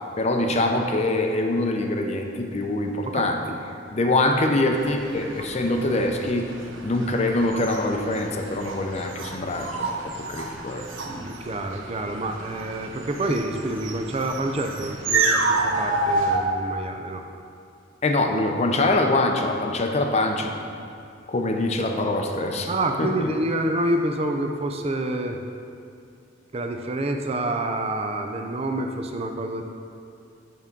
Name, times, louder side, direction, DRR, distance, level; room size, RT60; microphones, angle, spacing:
voice 1, 0.2-3.4 3.9-6.5 6.8-10.9 13.3-13.4 18.0-20.5 21.3-22.7 23.0-23.3, left 2 dB, 35° left, 3 dB, 0.6 m, -24 dB
sound 1, 4.7-16.4, right 3 dB, 80° right, 0.8 m, -29 dB
voice 2, 11.0-17.2 22.7-25.4 26.5-29.6, right 1 dB, 30° right, 4 dB, 0.5 m, -27 dB
9.8 x 3.6 x 5.2 m, 2.5 s
head